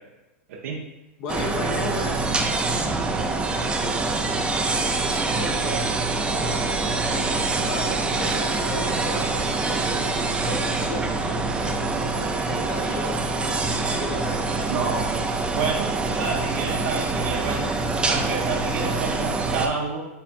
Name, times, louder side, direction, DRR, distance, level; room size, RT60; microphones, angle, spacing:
voice 1, 0.5-0.8 14.7-15.1 15.5-17.7 18.1-20.1, right 5 dB, 70° right, -3 dB, 0.8 m, -29 dB
voice 2, 1.2-2.2 5.1-5.9 6.2-7.2 7.6-13.2 13.8-14.7, left 2 dB, 50° left, 0 dB, 0.9 m, -35 dB
sound 1, 1.3-19.7, right 3 dB, 15° right, 0.5 m, -25 dB
5.6 x 3.4 x 2.6 m, 1.0 s
hypercardioid pair, 120°, 7 cm